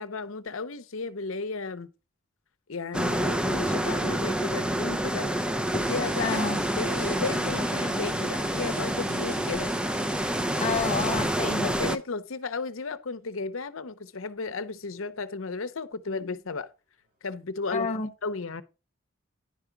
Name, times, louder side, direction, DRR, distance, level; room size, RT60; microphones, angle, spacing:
voice 1, 0.0-1.9 2.7-5.3 5.7-6.4 6.7-9.7 11.6-16.7 17.2-17.9 18.2-18.6, left 4 dB, 70° left, 0.8 m, -34 dB
sound 1, 2.9-12.0, right 1 dB, 5° right, 0.7 m, -28 dB
sound 2, 5.6-12.3 14.1-14.2 14.7-15.7 17.0-17.1, right 2 dB, 45° right, 5.4 m, -48 dB
voice 2, 6.2-6.6 10.6-11.8 17.7-18.1, left 4 dB, 35° left, 0.7 m, -29 dB
10.5 x 5.0 x 5.8 m
head